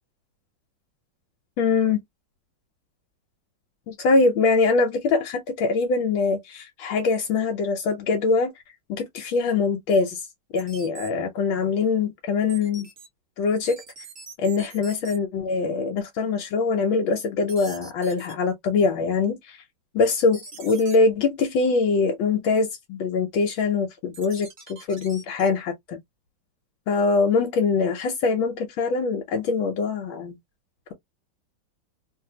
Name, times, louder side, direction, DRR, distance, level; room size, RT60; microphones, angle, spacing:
voice 1, 1.6-2.0 3.9-8.5 8.9-10.2 10.5-12.9 13.4-13.8 14.4-19.6 19.9-26.0 26.9-30.4, left 4 dB, 75° left, 1.5 m, -23 dB
sound 1, 10.6-11.1 12.5-13.1 13.7-15.2 17.5-18.3 20.3-21.0 24.1-25.5, right 4 dB, 45° right, 1.2 m, -43 dB
3.2 x 2.8 x 2.7 m
omnidirectional pair, 2.2 m